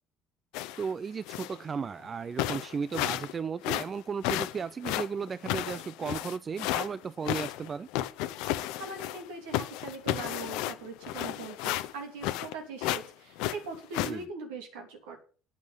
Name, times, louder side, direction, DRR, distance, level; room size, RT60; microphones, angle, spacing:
sound 1, 0.5-0.9 1.3-1.6 2.0-2.1 2.4-3.3 3.6-6.9 7.2-9.3 9.5-12.5 12.8-13.1 13.4-14.1, left 15 dB, 70° left, 0.8 m, -32 dB
voice 1, 0.8-7.9 14.0-14.3, right 6 dB, 35° right, 0.5 m, -35 dB
voice 2, 8.4-15.2, right 3 dB, 75° right, 3.2 m, -41 dB
9.2 x 8.2 x 8.1 m
hypercardioid pair, 60°, 0 cm